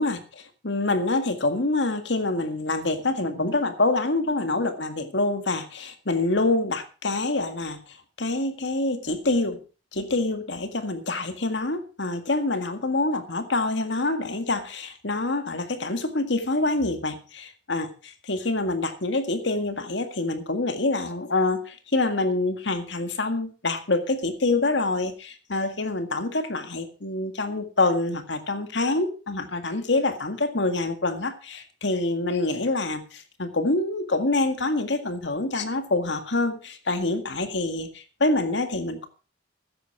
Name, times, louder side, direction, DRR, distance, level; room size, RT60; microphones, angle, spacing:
voice 1, 0.0-9.6 9.9-17.9 18.3-39.1, left 2 dB, 75° left, 8 dB, 1.9 m, -26 dB
13.5 x 10.0 x 4.8 m, 0.35 s
head